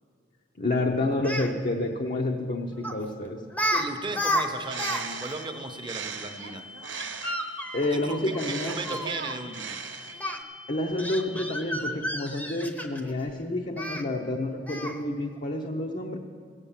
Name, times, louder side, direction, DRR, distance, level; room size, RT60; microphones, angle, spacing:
voice 1, 0.6-3.4 7.7-9.0 10.7-16.2, left 2 dB, 45° left, 1 dB, 0.8 m, -29 dB
Speech, 1.1-1.5 2.8-3.0 3.5-5.0 5.3-5.4 7.0-9.1 10.2-10.4 11.0-13.1 13.8-14.0 14.7-15.0, equal, 10° left, 0.8 m, -31 dB
voice 2, 3.7-6.7 7.9-9.8, right 3 dB, 25° right, 5 dB, 0.8 m, -36 dB
Bird, 4.4-7.5 8.2-10.4, right 6 dB, 75° right, 0.9 m, -38 dB
sound 1, 4.6-11.8, left 3 dB, 80° left, 0.9 m, -46 dB
16.5 x 8.3 x 7.3 m, 2.1 s
head